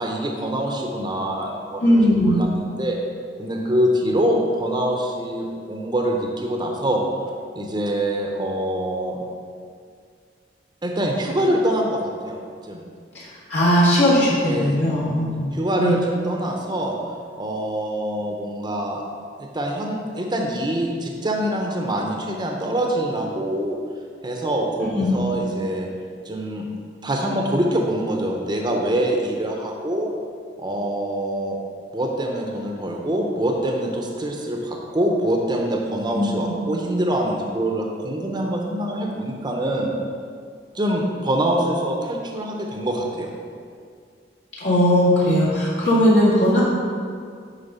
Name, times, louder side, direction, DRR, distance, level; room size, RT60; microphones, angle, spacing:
voice 1, 0.0-3.0 3.4-7.0 7.5-9.2 10.8-12.4 12.6-12.8 14.4-14.8 15.5-17.0 17.4-19.0 19.4-23.8 24.2-25.9 26.3-26.7 27.0-30.1 30.6-31.6 31.9-39.9 40.7-43.3, right 1 dB, 25° right, 1 dB, 0.7 m, -24 dB
voice 2, 1.8-2.4 13.1-15.5 15.8-15.9 24.9-25.1 36.1-36.5 44.6-46.6, equal, 70° left, -8 dB, 1.9 m, -18 dB
9.0 x 3.8 x 5.5 m, 2.1 s
head